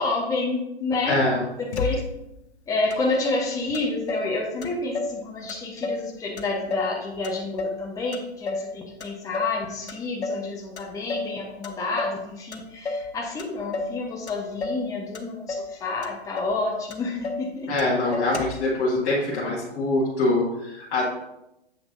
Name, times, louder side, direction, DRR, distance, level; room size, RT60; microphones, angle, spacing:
voice 1, 0.0-1.2 1.6-2.0 2.7-17.7 18.1-18.2, left 3 dB, 10° left, -1 dB, 1.0 m, -29 dB
voice 2, 1.1-1.4 17.7-21.0, left 2 dB, 30° left, -7 dB, 1.7 m, -24 dB
Motor vehicle (road), 1.7-2.4 2.9-3.0 3.2-4.3 4.6-5.2 5.5-6.1 6.4-7.8 8.1-8.7 9.0-9.6 9.9-10.5 10.8-11.3 11.6-12.2 12.5-13.1 13.4-14.0 14.3-14.9 15.1-15.7 16.0-16.1 16.4-16.6 16.9-17.5 17.8-17.9 18.1-18.7, left 3 dB, 80° left, 1.0 m, -31 dB
7.8 x 5.8 x 2.6 m, 0.86 s
figure-of-eight pair, 120°, 33 cm